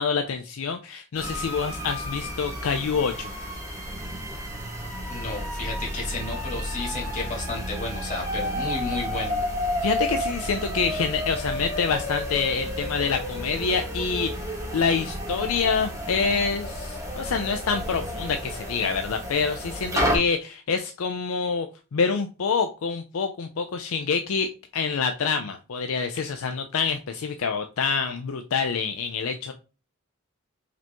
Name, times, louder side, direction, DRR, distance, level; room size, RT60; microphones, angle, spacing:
voice 1, 0.0-3.3 9.8-14.5 14.7-29.5, left 5 dB, 65° left, 7 dB, 0.4 m, -26 dB
sound 1, 1.1-20.2, equal, 15° right, 1.3 m, -31 dB
voice 2, 5.1-9.4, left 2 dB, 35° left, -2 dB, 2.0 m, -32 dB
4.9 x 3.0 x 3.4 m, 0.33 s
head